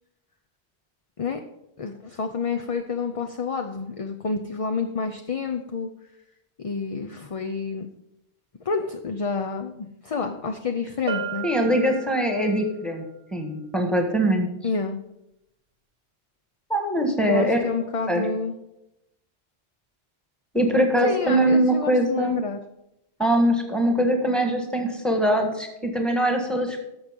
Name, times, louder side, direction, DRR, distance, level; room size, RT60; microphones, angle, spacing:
voice 1, 1.8-5.9 6.6-7.9 8.6-11.5 14.6-15.0 17.2-18.6 21.0-22.6, left 4 dB, 40° left, 5 dB, 0.6 m, -29 dB
Bell, 11.1-12.7, right 5 dB, 60° right, 1.0 m, -33 dB
voice 2, 11.4-13.0 13.3-14.5 16.7-17.6 18.1-18.2 20.5-22.4 23.2-26.8, right 1 dB, ahead, 3 dB, 1.6 m, -22 dB
11.0 x 7.1 x 5.2 m, 0.87 s
omnidirectional pair, 1.1 m